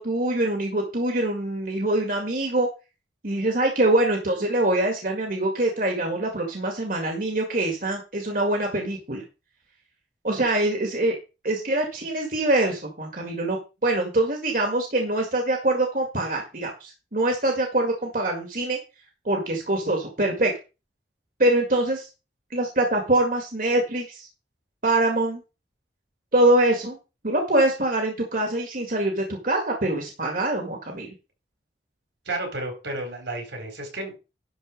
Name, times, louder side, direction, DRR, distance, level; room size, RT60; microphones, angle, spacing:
voice 1, 0.0-2.7 3.2-9.2 10.2-11.2 11.4-18.8 19.3-20.5 21.4-22.1 22.5-24.3 24.8-25.4 26.3-27.0 27.2-31.1, right 1 dB, 50° right, 2 dB, 2.1 m, -24 dB
voice 2, 32.3-34.2, right 2 dB, 80° right, 3 dB, 4.4 m, -32 dB
11.5 x 4.4 x 6.4 m, 0.29 s
head